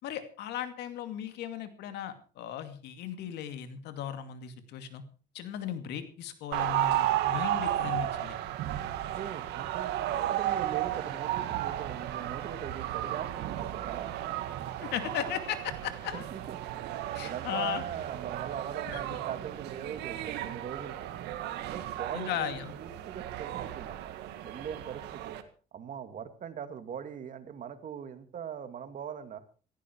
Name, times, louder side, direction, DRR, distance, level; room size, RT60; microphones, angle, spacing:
voice 1, 0.0-5.0 5.3-8.4 14.8-16.3 17.1-17.8 18.9-19.0 22.1-22.7, left 10 dB, 80° left, 9 dB, 2.5 m, -36 dB
sound 1, 6.5-25.4, right 13 dB, 85° right, 1.9 m, -34 dB
voice 2, 9.1-14.1 16.1-16.8 17.2-21.1 21.7-25.4 25.7-29.4, right 8 dB, 50° right, 10 dB, 2.2 m, -41 dB
16.5 x 15.0 x 4.6 m, 0.38 s
cardioid pair, 110°, 17 cm